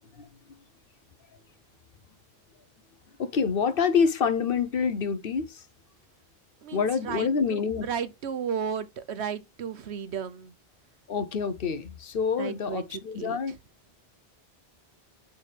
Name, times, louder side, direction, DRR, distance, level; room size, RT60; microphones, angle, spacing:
voice 1, 3.2-5.6 6.7-7.8 11.1-13.5, left 6 dB, 60° left, 1.0 m, -27 dB
voice 2, 6.6-10.5 12.4-13.4, right 7 dB, 85° right, 1.1 m, -34 dB
8.5 x 3.6 x 3.4 m
omnidirectional pair, 1.1 m